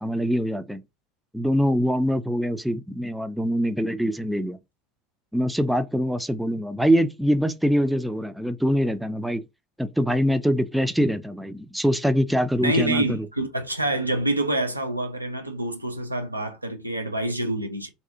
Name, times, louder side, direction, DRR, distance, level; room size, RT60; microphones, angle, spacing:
voice 1, 0.0-0.8 1.3-4.6 5.3-9.4 9.8-13.3, equal, 5° right, 0.3 m, -24 dB
voice 2, 12.6-17.9, right 1 dB, 90° right, 0.4 m, -26 dB
2.7 x 2.3 x 2.4 m
figure-of-eight pair, 75°, 0 cm